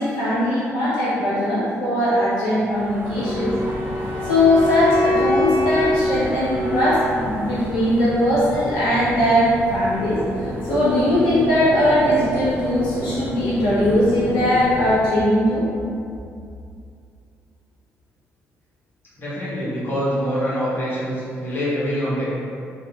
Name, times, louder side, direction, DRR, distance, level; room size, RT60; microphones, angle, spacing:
voice 1, 0.0-3.5 4.2-15.7, left 1 dB, 75° left, -10 dB, 0.7 m, -20 dB
sound 1, 2.7-15.0, equal, 30° right, 0.8 m, -32 dB
Wind instrument woodwind instrument, 3.2-7.3, left 1 dB, 90° right, 0.7 m, -24 dB
voice 2, 19.2-22.3, equal, 30° left, -10 dB, 1.3 m, -25 dB
3.4 x 2.7 x 2.3 m, 2.4 s
hypercardioid pair, 45°, 7 cm